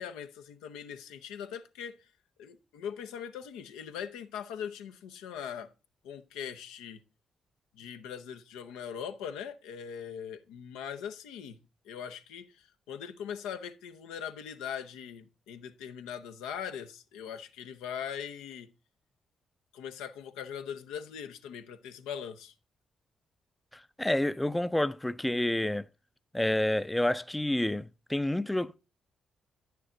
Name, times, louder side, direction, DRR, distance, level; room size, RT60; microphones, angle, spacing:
voice 1, 0.0-2.0 2.4-5.7 6.0-7.0 7.8-11.6 11.8-18.7 19.7-22.5, left 8 dB, 85° left, 0.6 m, -41 dB
voice 2, 23.7-25.9 26.3-28.8, left 1 dB, 10° left, 0.4 m, -29 dB
9.3 x 6.7 x 3.8 m
hypercardioid pair, 50°, 0 cm